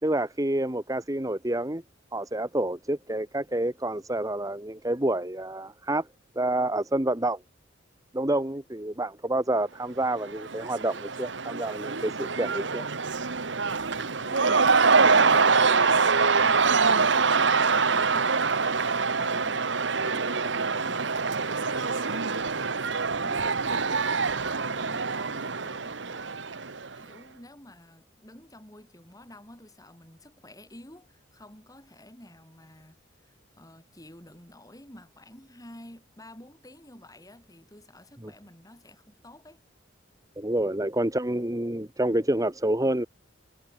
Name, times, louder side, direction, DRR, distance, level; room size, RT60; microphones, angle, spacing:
voice 1, 0.0-1.8 2.1-6.1 6.3-7.4 8.1-12.9 38.2-38.3 40.4-43.1, right 1 dB, 20° right, 1.6 m, -28 dB
Cheering / Crowd, 10.1-27.0, right 4 dB, 65° right, 1.4 m, -25 dB
voice 2, 14.2-16.1 16.3-18.8 19.1-26.7 27.0-39.6, left 1 dB, 20° left, 7.4 m, -50 dB
head